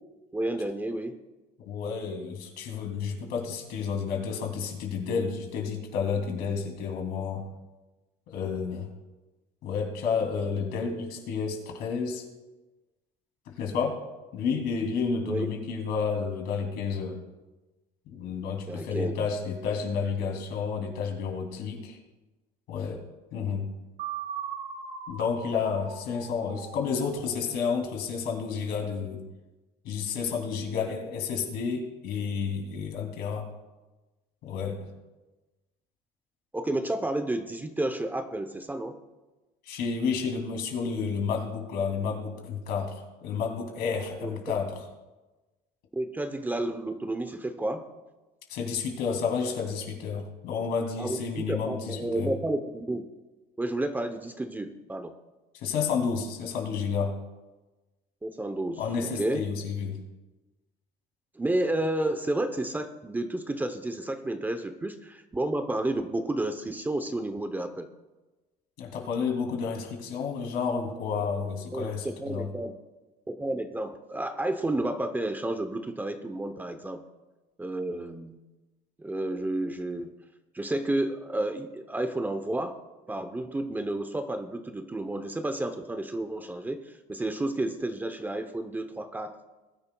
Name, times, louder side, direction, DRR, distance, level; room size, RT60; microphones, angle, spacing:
voice 1, 0.3-1.1 6.5-6.6 15.2-15.5 18.7-19.1 33.2-33.3 36.5-39.0 44.2-44.6 46.0-47.8 51.0-53.1 53.6-55.1 58.2-58.8 59.2-59.4 61.4-67.9 71.7-72.8 73.3-77.0 77.6-78.4 79.0-80.1 80.5-82.8 83.1-89.4, right 1 dB, 10° right, 8 dB, 0.7 m, -31 dB
voice 2, 1.7-7.4 8.3-8.9 9.6-12.2 13.5-14.0 14.3-17.2 18.1-22.0 22.7-23.0 23.3-23.7 25.1-29.2 29.8-33.5 34.4-34.9 39.7-44.7 48.5-52.3 55.5-57.2 58.8-60.0 68.8-72.5, left 5 dB, 70° left, 2 dB, 2.8 m, -31 dB
sound 1, 24.0-27.9, right 7 dB, 65° right, 2.3 m, -40 dB
21.0 x 10.5 x 2.3 m, 1.1 s
cardioid pair, 130°, 17 cm